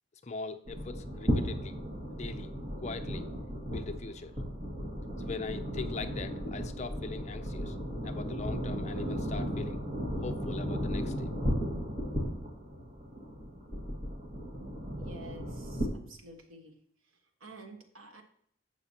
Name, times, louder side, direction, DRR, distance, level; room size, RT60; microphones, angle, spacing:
voice 1, 0.2-1.8 2.1-2.5 2.8-3.2 3.7-4.3 5.3-7.7 8.0-9.8 10.2-11.3, left 4 dB, 35° left, 9 dB, 0.5 m, -41 dB
sound 1, 0.7-15.9, equal, 35° right, 1.9 m, -35 dB
voice 2, 15.0-16.7 17.4-18.2, right 1 dB, 85° right, 3 dB, 1.5 m, -50 dB
11.5 x 8.0 x 2.9 m, 0.67 s
head